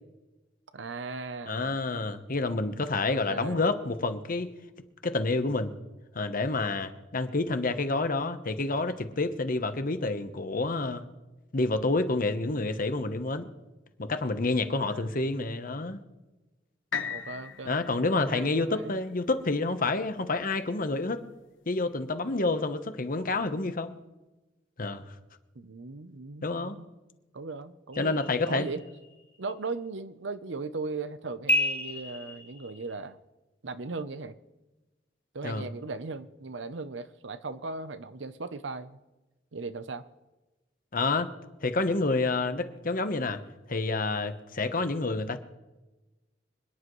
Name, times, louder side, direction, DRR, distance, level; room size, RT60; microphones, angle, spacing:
voice 1, 0.7-1.8 3.1-3.6 14.7-15.1 17.1-17.9 18.2-19.0 25.5-26.9 27.3-28.8 29.4-33.2 33.6-34.4 35.3-39.0 39.5-40.0, right 3 dB, 70° right, 12 dB, 0.8 m, -38 dB
voice 2, 1.5-4.5 5.0-5.8 6.1-11.0 11.5-13.5 14.0-16.0 17.6-21.2 21.7-24.0 24.8-25.0 26.4-26.8 28.0-28.7 35.4-35.7 40.9-41.3 41.6-43.4 43.7-45.4, left 3 dB, 50° left, 9 dB, 1.0 m, -28 dB
sound 1, 16.9-20.9 21.4-21.5, left 7 dB, 80° left, 1.1 m, -40 dB
sound 2, 27.9-29.2 31.5-33.0, left 1 dB, 10° left, 1.4 m, -31 dB
26.0 x 10.5 x 3.2 m, 1.1 s
head